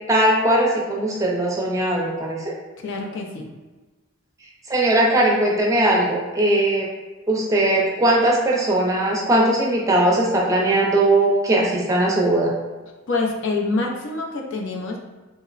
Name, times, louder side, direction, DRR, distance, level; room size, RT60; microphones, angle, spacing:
voice 1, 0.1-2.5 4.7-6.9 7.3-12.5, right 1 dB, 15° right, -3 dB, 0.4 m, -19 dB
voice 2, 2.8-3.5 13.1-15.0, left 3 dB, 60° left, 0 dB, 0.5 m, -26 dB
3.8 x 2.0 x 2.4 m, 1.2 s
head